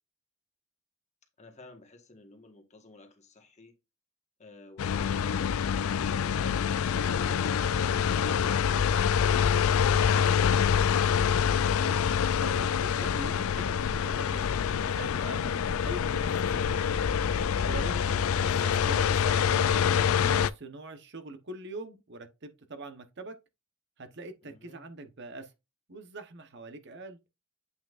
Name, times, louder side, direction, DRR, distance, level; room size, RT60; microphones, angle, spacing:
voice 1, 1.4-3.7 4.4-6.7 24.4-24.8, left 3 dB, 35° left, 1.5 m, -52 dB
sound 1, 4.8-20.5, left 7 dB, 80° left, 0.4 m, -26 dB
voice 2, 11.6-12.0 12.3-16.9 17.7-23.3 24.0-25.5 25.9-27.2, right 2 dB, 55° right, 1.0 m, -44 dB
8.1 x 5.7 x 2.5 m
head